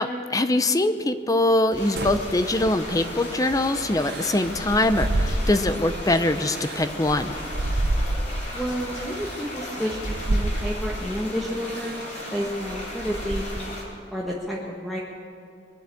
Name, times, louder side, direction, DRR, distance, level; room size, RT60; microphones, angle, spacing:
voice 1, 0.0-7.4, left 2 dB, 20° left, 10 dB, 0.6 m, -23 dB
sound 1, 1.7-10.5, left 1 dB, 85° left, 2.8 m, -43 dB
sound 2, 1.7-13.8, left 1 dB, 45° left, 4.4 m, -37 dB
sound 3, 2.0-3.1 4.0-5.9 6.4-8.6 9.2-9.4 10.0-11.1 11.7-12.0 12.4-13.8, right 1 dB, 65° right, 0.8 m, -29 dB
voice 2, 8.5-13.7 14.1-15.0, equal, ahead, -4 dB, 1.4 m, -30 dB
22.0 x 7.7 x 8.5 m, 2.5 s
head